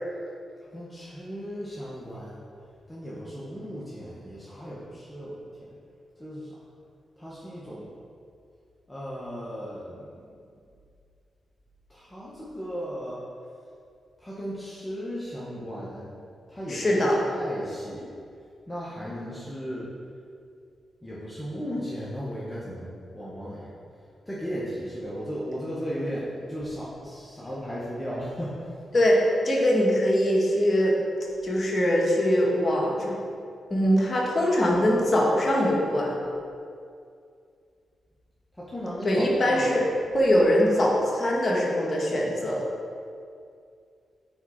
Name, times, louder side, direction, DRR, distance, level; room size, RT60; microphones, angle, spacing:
voice 1, 0.7-2.4 2.9-5.8 6.2-6.5 7.2-7.9 8.9-10.1 11.9-13.2 14.2-16.1 16.5-18.1 18.7-19.9 21.0-23.7 24.3-28.7 38.6-39.9, equal, 15° left, -8 dB, 1.9 m, -36 dB
voice 2, 16.7-17.2 28.9-31.0 31.4-33.2 33.7-36.1 39.0-39.8 40.1-42.6, equal, 40° left, -3 dB, 2.0 m, -22 dB
9.5 x 4.5 x 4.4 m, 2.4 s
supercardioid pair, 45°, 0 cm